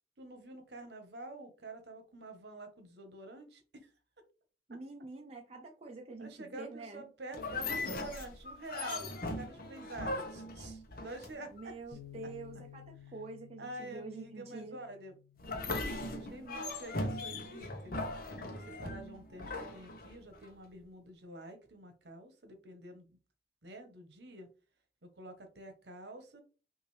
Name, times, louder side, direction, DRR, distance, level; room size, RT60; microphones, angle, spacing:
voice 1, 0.2-3.9 6.2-12.0 13.6-15.1 16.0-18.0 18.4-23.2 23.6-24.5 25.0-26.4, right 2 dB, 70° right, 6 dB, 1.1 m, -48 dB
voice 2, 4.7-7.1 11.5-14.8, right 3 dB, 35° right, 1 dB, 0.6 m, -46 dB
sound 1, 7.3-11.6 15.4-20.5, left 2 dB, 55° left, 0.8 m, -39 dB
sound 2, 11.9-18.2, left 10 dB, 90° left, 0.9 m, -56 dB
5.6 x 2.7 x 3.2 m, 0.34 s
head